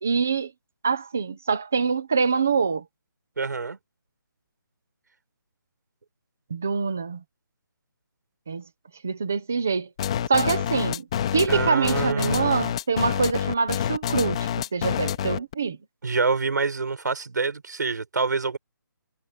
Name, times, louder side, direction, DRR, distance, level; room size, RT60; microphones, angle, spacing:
voice 1, 0.0-0.5 0.8-2.8 6.5-7.2 8.5-8.6 9.0-9.9 10.3-11.1 11.3-15.8, right 5 dB, 5° right, 0.4 m, -25 dB
voice 2, 3.4-3.8 11.5-12.7 16.0-18.6, right 4 dB, 55° right, 5.1 m, -26 dB
sound 1, 10.0-15.5, left 9 dB, 15° left, 1.3 m, -27 dB
hypercardioid pair, 180°, 11 cm